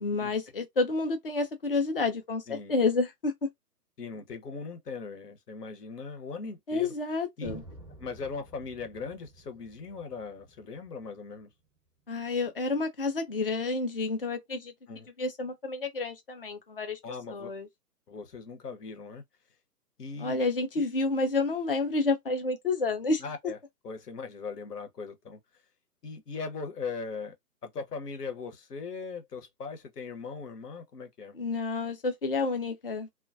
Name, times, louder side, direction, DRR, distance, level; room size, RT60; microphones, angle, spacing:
voice 1, 0.0-3.3 6.7-7.6 12.1-14.7 15.2-17.0 17.3-17.7 20.2-23.2 31.3-33.1, left 3 dB, 40° left, 0.4 m, -29 dB
voice 2, 4.0-6.9 7.4-7.5 8.0-11.5 14.9-15.1 17.0-17.5 18.1-19.2 20.0-20.4 20.8-20.9 23.2-23.6 23.8-25.4 26.0-27.3 27.6-31.4, left 4 dB, 70° left, 1.0 m, -39 dB
sound 1, 7.4-11.4, right 3 dB, 15° left, 0.9 m, -50 dB
2.3 x 2.1 x 2.5 m
hypercardioid pair, 145°, 48 cm